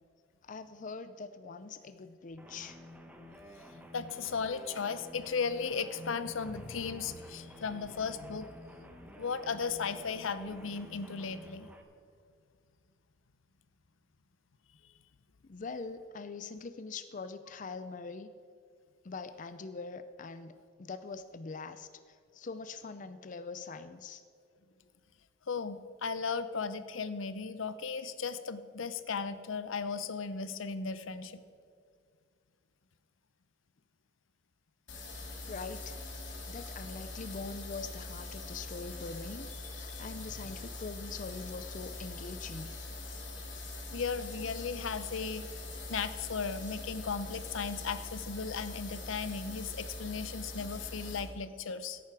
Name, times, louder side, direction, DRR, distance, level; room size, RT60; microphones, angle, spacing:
voice 1, 0.4-2.8 15.4-18.3 19.0-20.5 20.8-24.2 35.5-35.9 36.4-42.7, left 4 dB, 40° left, 11 dB, 0.5 m, -43 dB
sound 1, 2.4-11.8, left 1 dB, 10° right, 1.0 m, -51 dB
voice 2, 3.7-8.5 9.2-11.7 25.5-31.4 39.9-40.0 43.9-45.6 45.9-52.0, left 5 dB, 80° left, 12 dB, 0.7 m, -36 dB
sound 2, 34.9-51.2, left 2 dB, 65° left, 2.6 m, -43 dB
16.5 x 9.3 x 4.8 m, 2.2 s
head